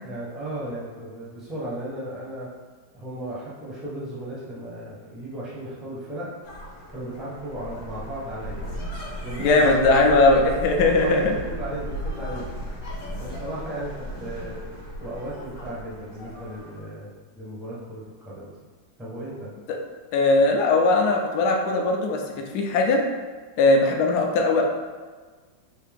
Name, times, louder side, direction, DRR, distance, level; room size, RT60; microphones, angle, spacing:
voice 1, 0.0-2.5 2.9-6.3 6.9-8.7 9.2-10.4 10.8-12.7 13.2-14.6 15.0-17.1 17.3-18.5 19.0-19.5, right 1 dB, ahead, -7 dB, 0.5 m, -35 dB
sound 1, 6.4-16.8, equal, 50° left, 1.2 m, -35 dB
voice 2, 9.4-11.3 20.1-22.2 22.5-23.0 23.6-24.6, left 2 dB, 70° left, 2 dB, 1.1 m, -19 dB
4.5 x 2.8 x 3.5 m, 1.4 s
omnidirectional pair, 2.0 m